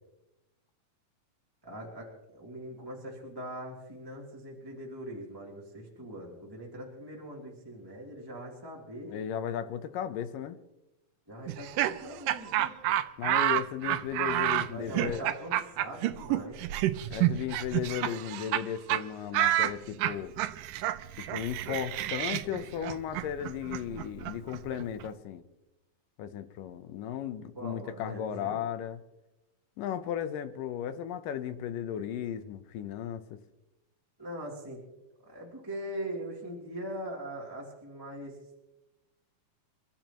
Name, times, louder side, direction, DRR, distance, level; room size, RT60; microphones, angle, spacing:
voice 1, 1.6-9.2 11.3-12.8 14.7-16.6 27.5-28.6 34.2-34.8 35.2-38.4, right 1 dB, 5° right, -4 dB, 2.6 m, -41 dB
voice 2, 9.1-10.6 13.2-15.3 17.1-20.3 21.3-25.4 26.2-29.0 29.8-33.4, left 9 dB, 80° left, 11 dB, 2.5 m, -35 dB
Laughter, 11.5-18.6 18.9-19.0 19.3-25.1, right 13 dB, 80° right, 2.3 m, -30 dB
30.0 x 13.5 x 3.0 m, 0.96 s
omnidirectional pair, 3.9 m